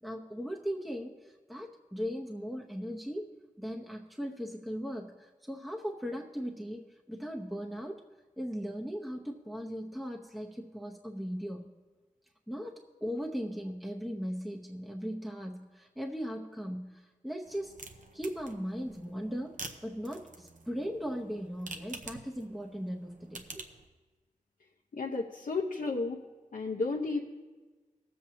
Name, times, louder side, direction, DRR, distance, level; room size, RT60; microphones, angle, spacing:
voice 1, 0.0-3.3 3.6-8.0 8.4-11.7 12.5-17.8 18.1-19.6 19.8-23.7, equal, ahead, 0 dB, 0.8 m, -38 dB
sound 1, 17.4-23.9, right 3 dB, 70° right, 0.8 m, -48 dB
voice 2, 24.9-26.2 26.5-27.2, left 3 dB, 80° left, -1 dB, 0.8 m, -32 dB
19.5 x 7.6 x 2.8 m, 1.3 s
wide cardioid pair, 70°, 14 cm